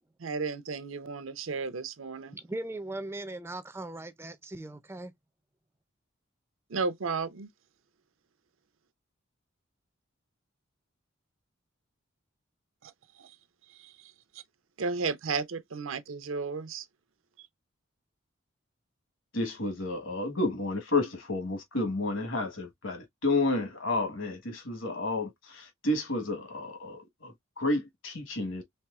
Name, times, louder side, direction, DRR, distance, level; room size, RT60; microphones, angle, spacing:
voice 1, 0.2-2.4 6.7-7.5 12.8-12.9 13.2-13.3 13.8-14.1 14.8-16.9, right 4 dB, 75° right, 0.6 m, -33 dB
voice 2, 2.3-5.1, right 2 dB, 10° right, 0.4 m, -39 dB
voice 3, 19.3-28.6, left 2 dB, 70° left, 1.3 m, -31 dB
4.3 x 3.4 x 2.4 m
head